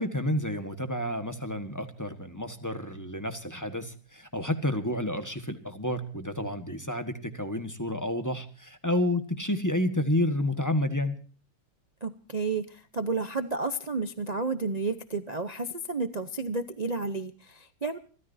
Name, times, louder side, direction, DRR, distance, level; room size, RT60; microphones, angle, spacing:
voice 1, 0.0-11.2, left 1 dB, 10° left, 8 dB, 1.2 m, -30 dB
voice 2, 12.0-18.0, right 3 dB, 85° right, 9 dB, 0.3 m, -31 dB
29.5 x 14.0 x 2.7 m, 0.41 s
omnidirectional pair, 2.1 m